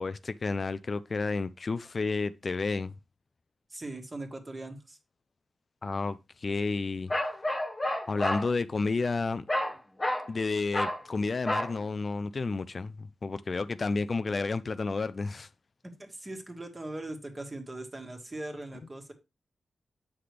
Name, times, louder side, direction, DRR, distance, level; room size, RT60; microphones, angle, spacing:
voice 1, 0.0-3.0 5.8-7.1 8.1-9.4 10.3-15.5, left 3 dB, 40° left, 0.4 m, -31 dB
voice 2, 3.7-5.0 16.0-19.1, right 2 dB, 25° right, 1.5 m, -40 dB
Bark, 7.1-8.5 9.5-9.7 10.0-10.3 10.7-11.0 11.5-11.7, left 1 dB, 25° left, 1.3 m, -30 dB
8.0 x 5.8 x 3.3 m
wide cardioid pair, 100°, 0 cm